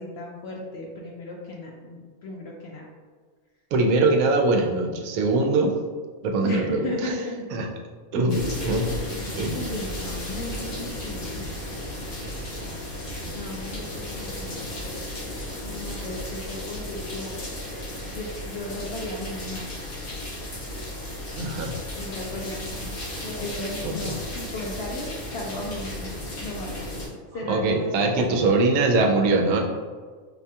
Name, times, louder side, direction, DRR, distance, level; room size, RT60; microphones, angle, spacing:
voice 1, 0.0-2.9 6.4-7.5 8.6-9.2 9.5-11.2 13.3-14.6 15.6-17.4 18.1-19.7 22.0-26.1 26.4-26.8 27.3-28.5, left 2 dB, 65° left, -2 dB, 0.6 m, -35 dB
voice 2, 3.7-5.8 6.2-7.2 7.5-7.7 8.1-8.9 9.4-9.6 15.9-16.0 21.4-21.8 23.8-24.2 27.5-29.6, right 2 dB, 90° right, 2 dB, 1.0 m, -22 dB
sound 1, 8.3-27.1, left 1 dB, 90° left, 1.7 m, -34 dB
4.7 x 2.3 x 2.7 m, 1.5 s
omnidirectional pair, 1.5 m